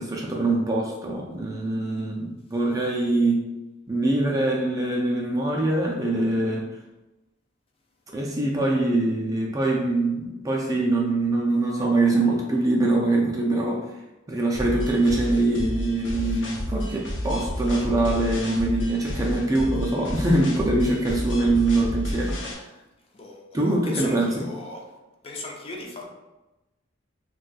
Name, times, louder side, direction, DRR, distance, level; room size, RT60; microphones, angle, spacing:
voice 1, 0.0-3.4 3.9-6.6 8.1-13.8 14.3-22.4 23.5-24.4, right 2 dB, 20° right, -2 dB, 0.4 m, -23 dB
sound 1, 14.5-22.5, equal, 70° left, 0.7 m, -31 dB
voice 2, 23.1-24.8 25.2-26.0, left 3 dB, 30° left, 0 dB, 0.5 m, -37 dB
2.6 x 2.3 x 4.0 m, 1.0 s
head